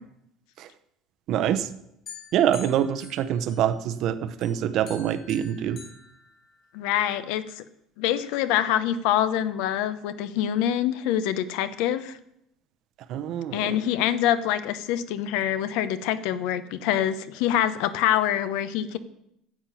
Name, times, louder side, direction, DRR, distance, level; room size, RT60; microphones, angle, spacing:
voice 1, 1.3-1.7 2.3-5.8 13.1-13.8, right 10 dB, 45° right, 12 dB, 0.7 m, -25 dB
sound 1, 2.1-4.0 4.4-6.9, left 5 dB, 30° left, 2.9 m, -47 dB
voice 2, 6.7-7.6 8.0-12.2 13.5-19.0, left 11 dB, 70° left, 14 dB, 0.8 m, -25 dB
10.0 x 7.5 x 8.4 m, 0.79 s
cardioid pair, 175°, 0 cm